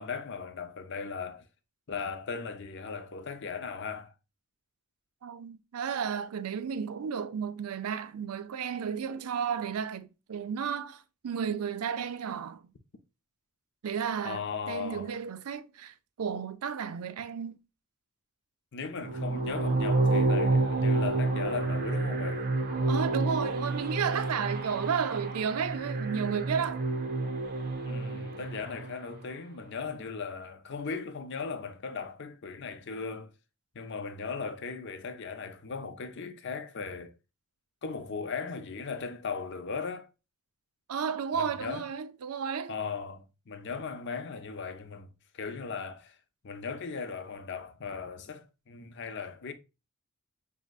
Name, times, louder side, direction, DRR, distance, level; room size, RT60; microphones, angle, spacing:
voice 1, 0.0-1.5 1.9-4.1 14.2-15.1 18.7-22.5 27.8-33.3 33.7-37.1 37.8-40.1 41.3-41.8 42.7-45.1 45.3-46.2 46.4-49.5, left 5 dB, 55° left, 0.6 m, -37 dB
voice 2, 5.2-12.6 13.8-17.6 22.9-26.8 40.9-42.7, right 7 dB, 85° right, 0.4 m, -33 dB
sound 1, 19.0-29.1, right 3 dB, 45° right, 0.7 m, -29 dB
6.1 x 2.8 x 2.3 m
head